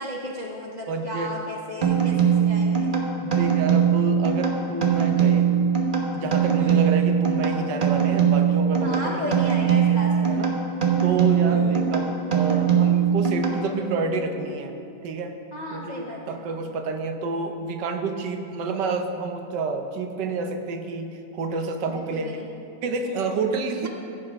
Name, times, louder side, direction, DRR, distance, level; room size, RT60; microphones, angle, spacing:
voice 1, 0.0-2.9 6.6-6.8 8.8-10.4 11.4-11.9 15.5-16.4 21.9-22.5 23.0-23.4 23.8-23.9, equal, 45° left, -2 dB, 0.5 m, -34 dB
voice 2, 0.9-1.4 2.0-2.2 3.2-5.5 6.1-9.5 10.2-10.5 11.0-14.7 15.0-15.4 15.7-22.3 22.8-23.9, right 4 dB, 80° right, 5 dB, 1.4 m, -29 dB
sound 1, 1.8-14.0, right 7 dB, 35° right, 0.9 m, -21 dB
15.5 x 7.5 x 3.5 m, 2.7 s
omnidirectional pair, 1.9 m